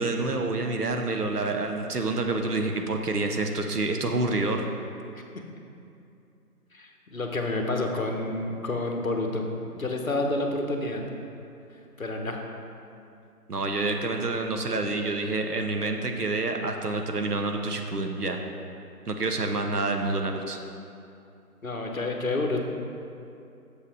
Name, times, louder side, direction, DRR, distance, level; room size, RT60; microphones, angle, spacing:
voice 1, 0.0-4.7 13.5-18.4 19.1-20.6, right 2 dB, 70° right, 4 dB, 1.0 m, -28 dB
voice 2, 6.7-9.4 9.7-11.0 12.0-12.4 21.6-22.6, left 2 dB, 55° left, 2 dB, 1.1 m, -29 dB
7.2 x 6.9 x 4.8 m, 2.6 s
figure-of-eight pair, 160°, 48 cm